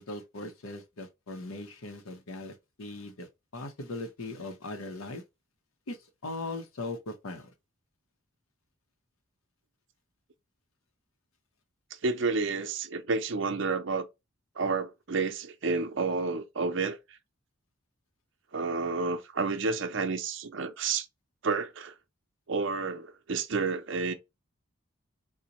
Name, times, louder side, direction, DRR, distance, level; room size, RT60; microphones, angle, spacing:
voice 1, 0.0-5.2 5.9-7.5, left 2 dB, 85° left, 0.7 m, -39 dB
voice 2, 12.0-14.1 14.6-17.0 18.5-21.1 21.4-21.9 22.5-24.1, right 4 dB, 60° right, 0.6 m, -30 dB
3.9 x 2.1 x 2.8 m
head